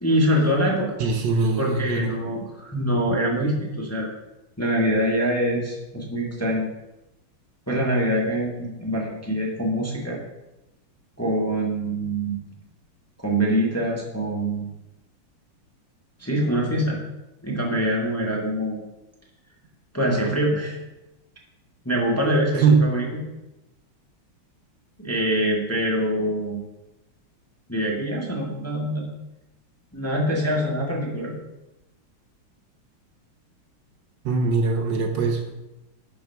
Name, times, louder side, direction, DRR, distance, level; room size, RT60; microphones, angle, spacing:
voice 1, 0.0-1.0 1.6-4.1 4.6-6.7 7.7-10.2 11.2-12.4 13.2-14.7 16.2-17.0 17.4-18.8 19.9-20.8 21.8-23.1 25.0-26.6 27.7-29.1 29.9-31.3, equal, 10° left, -2 dB, 1.2 m, -24 dB
voice 2, 1.0-2.1 22.5-22.8 34.2-35.5, right 4 dB, 65° right, 3 dB, 1.5 m, -21 dB
11.0 x 4.9 x 4.6 m, 0.96 s
omnidirectional pair, 2.2 m